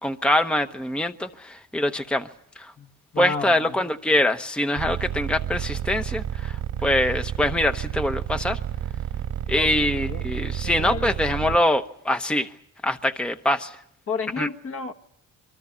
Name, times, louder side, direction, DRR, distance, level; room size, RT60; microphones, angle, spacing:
voice 1, 0.0-2.3 2.6-2.7 3.2-8.6 9.5-12.5 12.8-13.8 14.4-14.5, left 1 dB, 5° left, 0.9 m, -24 dB
voice 2, 3.1-3.8 9.6-10.3 10.6-11.1 14.1-14.9, left 5 dB, 45° left, 1.8 m, -32 dB
sound 1, 4.8-11.6, right 10 dB, 85° right, 2.2 m, -29 dB
26.0 x 23.5 x 6.9 m
cardioid pair, 90°, 30 cm